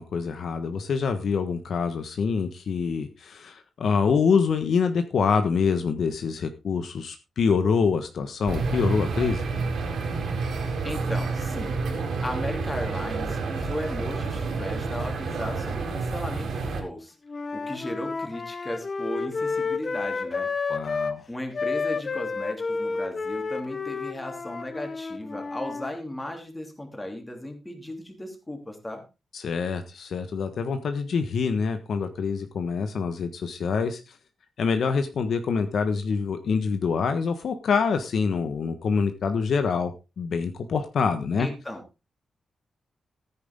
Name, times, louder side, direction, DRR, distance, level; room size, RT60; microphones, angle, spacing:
voice 1, 0.0-9.5 20.7-21.2 29.3-34.2 34.6-39.9 40.2-41.5, left 5 dB, 65° left, 8 dB, 1.3 m, -25 dB
sound 1, 8.5-16.8, right 4 dB, 75° right, 4.2 m, -29 dB
voice 2, 10.8-11.8 12.2-17.2 17.5-20.5 21.3-29.0 41.4-41.8, left 1 dB, 10° left, 4 dB, 3.0 m, -36 dB
Wind instrument woodwind instrument, 17.3-21.2 21.5-25.9, left 4 dB, 35° left, 1.0 m, -30 dB
14.5 x 9.6 x 3.7 m, 0.28 s
wide cardioid pair, 155°, 0 cm